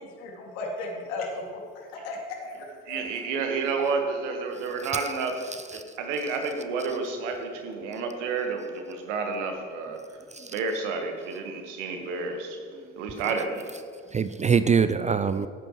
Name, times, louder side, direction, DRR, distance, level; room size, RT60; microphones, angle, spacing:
voice 1, 0.0-3.0, left 2 dB, 75° left, -1 dB, 2.2 m, -36 dB
voice 2, 2.9-10.2 10.5-12.6 12.9-13.7, right 4 dB, 80° right, 5 dB, 1.5 m, -30 dB
voice 3, 5.5-6.0 10.3-10.5 12.9-13.3 14.1-15.5, right 6 dB, 20° right, 12 dB, 0.3 m, -26 dB
16.5 x 8.7 x 3.1 m, 2.1 s
hypercardioid pair, 60°, 36 cm